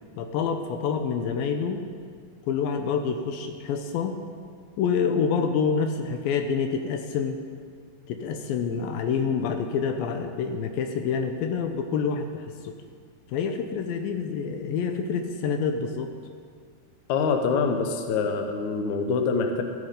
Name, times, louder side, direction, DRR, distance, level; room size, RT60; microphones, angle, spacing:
voice 1, 0.2-1.9 2.5-4.2 4.8-7.4 8.1-12.8 13.3-16.1, left 6 dB, 80° left, 6 dB, 2.5 m, -27 dB
voice 2, 17.1-19.6, left 5 dB, 65° left, 5 dB, 2.1 m, -25 dB
14.0 x 11.5 x 5.2 m, 2.1 s
omnidirectional pair, 4.2 m